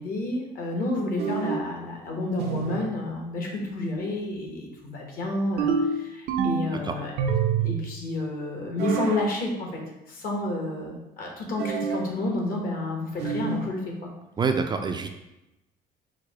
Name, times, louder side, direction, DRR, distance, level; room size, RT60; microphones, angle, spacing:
voice 1, 0.0-7.1 7.6-9.8 10.1-14.1, left 2 dB, 60° left, 0 dB, 1.2 m, -30 dB
sound 1, 1.2-1.7 2.4-2.9 5.6-6.8 7.2-7.8 8.8-9.3 11.6-12.1 13.2-13.7, right 5 dB, 75° right, 0.6 m, -27 dB
voice 2, 14.4-15.1, right 5 dB, 25° right, 5 dB, 0.3 m, -26 dB
4.8 x 2.2 x 4.7 m, 0.94 s
cardioid pair, 110°, 17 cm